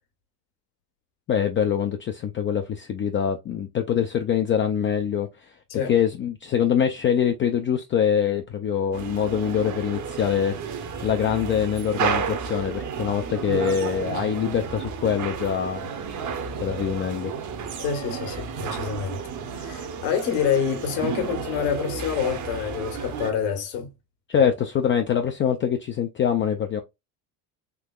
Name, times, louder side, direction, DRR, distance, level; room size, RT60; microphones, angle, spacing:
voice 1, 1.3-5.5 5.9-10.5 11.0-15.9 16.2-17.3 24.3-26.8, left 8 dB, 30° left, 0.4 m, -24 dB
sound 1, 8.9-23.3, right 6 dB, 40° right, 0.9 m, -32 dB
voice 2, 17.8-19.2 19.5-23.9 24.3-24.5, left 7 dB, 75° left, 1.4 m, -27 dB
3.6 x 2.8 x 2.3 m
supercardioid pair, 95°, 47 cm